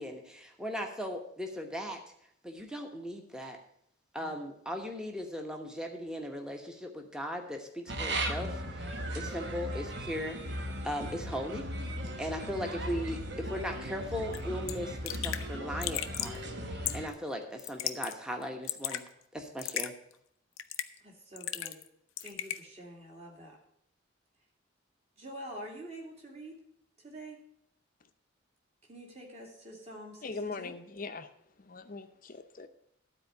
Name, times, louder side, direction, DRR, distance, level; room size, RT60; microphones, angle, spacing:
voice 1, 0.0-2.0 2.4-3.6 4.1-11.6 12.2-19.0 19.3-19.9, equal, 5° right, 3 dB, 1.1 m, -38 dB
sound 1, 7.9-17.1, right 1 dB, 55° right, 1.1 m, -37 dB
Raindrop / Drip, 14.3-14.4 14.7-14.8 15.1-15.4 15.8-16.4 16.9-17.1 17.6-18.1 18.4-19.0 19.6-19.9 20.6-21.0 21.4-21.9 22.2-22.6, left 12 dB, 85° left, 0.6 m, -35 dB
voice 2, 21.0-21.8 22.2-23.6 25.2-26.6 27.0-27.4 28.9-30.3 30.6-30.7, right 1 dB, 30° right, -1 dB, 2.5 m, -46 dB
voice 3, 30.2-32.7, left 3 dB, 45° left, 8 dB, 0.7 m, -41 dB
12.5 x 4.4 x 8.1 m, 0.71 s
head